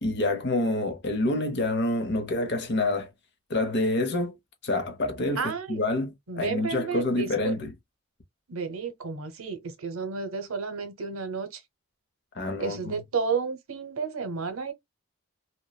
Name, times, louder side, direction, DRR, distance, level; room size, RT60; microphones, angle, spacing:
voice 1, 0.0-3.1 3.5-4.3 4.6-7.7 12.3-13.0, left 2 dB, 55° left, 0.8 m, -27 dB
voice 2, 5.4-5.8 6.3-7.5 8.5-11.6 12.6-14.7, right 5 dB, 85° right, 0.8 m, -32 dB
2.9 x 2.2 x 2.2 m
head